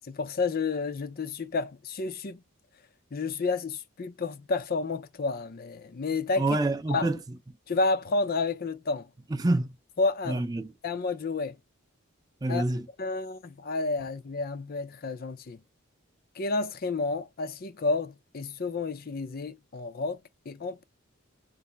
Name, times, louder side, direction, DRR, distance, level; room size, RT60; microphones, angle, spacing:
voice 1, 0.1-2.4 3.1-6.5 6.9-7.1 7.7-9.1 10.0-10.4 10.8-11.6 12.5-12.6 13.0-15.6 16.4-20.2 20.5-20.8, left 3 dB, 45° left, 0.5 m, -30 dB
voice 2, 6.4-7.4 9.3-9.8 10.3-10.7 12.4-12.9, right 2 dB, 15° right, 0.5 m, -27 dB
4.0 x 2.1 x 3.3 m
head